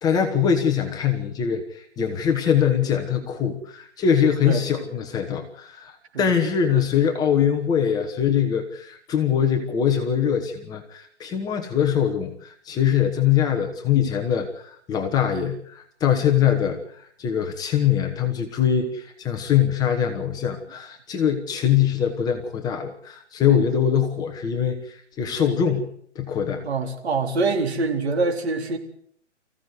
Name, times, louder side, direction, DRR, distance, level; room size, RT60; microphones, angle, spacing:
voice 1, 0.0-25.9 26.1-26.6, left 8 dB, 10° left, 3 dB, 1.2 m, -23 dB
voice 2, 26.6-28.8, right 3 dB, 60° right, 4 dB, 4.2 m, -24 dB
24.0 x 15.5 x 8.2 m, 0.65 s
hypercardioid pair, 155°, 36 cm